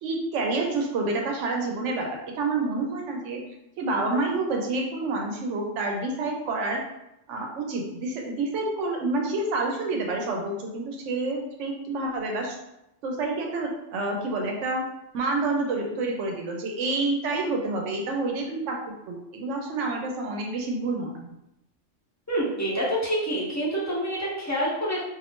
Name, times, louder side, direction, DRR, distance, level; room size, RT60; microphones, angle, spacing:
voice 1, 0.0-3.4 3.8-6.8 7.3-12.6 13.0-14.8 15.1-18.8 19.1-21.3, right 3 dB, 75° right, 1 dB, 1.0 m, -28 dB
voice 2, 22.3-25.0, right 1 dB, 15° left, -7 dB, 0.7 m, -27 dB
2.6 x 2.5 x 3.5 m, 0.88 s
omnidirectional pair, 1.3 m